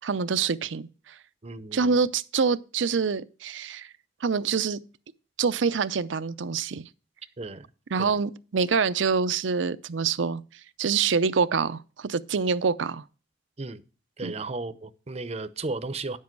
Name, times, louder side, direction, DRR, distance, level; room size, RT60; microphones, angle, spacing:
voice 1, 0.0-1.1 1.7-3.9 4.2-4.8 5.4-6.9 7.9-10.4 10.8-13.0 14.2-14.3, right 5 dB, 75° right, 0.6 m, -26 dB
voice 2, 1.4-2.0 7.4-7.6 8.0-8.1 13.6-13.8 14.2-16.2, right 3 dB, 35° right, 0.7 m, -34 dB
10.0 x 7.5 x 4.6 m
head